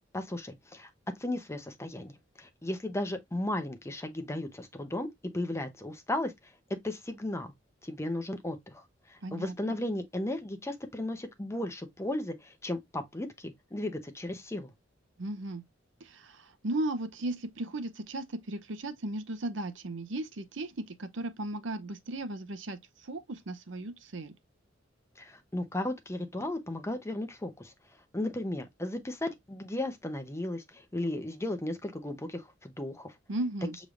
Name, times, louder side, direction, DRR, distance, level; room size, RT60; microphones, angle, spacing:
voice 1, 0.1-0.9 1.2-6.3 6.7-7.5 7.8-14.7 25.2-27.7 28.1-33.1, left 1 dB, 15° left, 0.7 m, -35 dB
voice 2, 9.2-9.5 15.2-15.6 16.0-24.3 33.3-33.8, right 2 dB, 70° right, 0.7 m, -36 dB
6.6 x 3.1 x 2.5 m
head